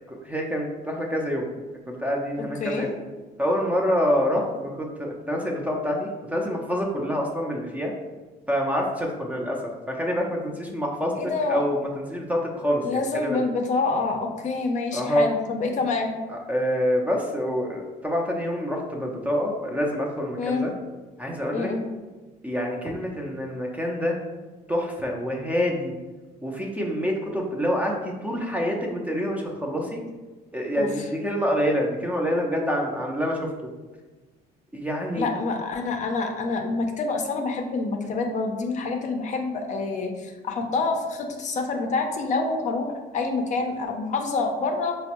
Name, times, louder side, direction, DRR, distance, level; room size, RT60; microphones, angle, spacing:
voice 1, 0.1-1.5 1.9-2.9 3.4-7.9 8.5-9.6 9.9-11.1 11.5-13.4 14.9-15.2 16.3-20.7 21.2-21.7 22.4-24.2 24.7-26.0 26.4-30.0 30.5-33.5 34.7-35.3, equal, 10° right, 0 dB, 0.4 m, -26 dB
voice 2, 11.2-11.6 12.8-16.2 20.4-20.7 21.5-21.8 30.8-30.9 35.1-44.9, left 3 dB, 45° left, 3 dB, 0.5 m, -27 dB
4.2 x 2.0 x 2.8 m, 1.2 s
cardioid pair, 110°, 17 cm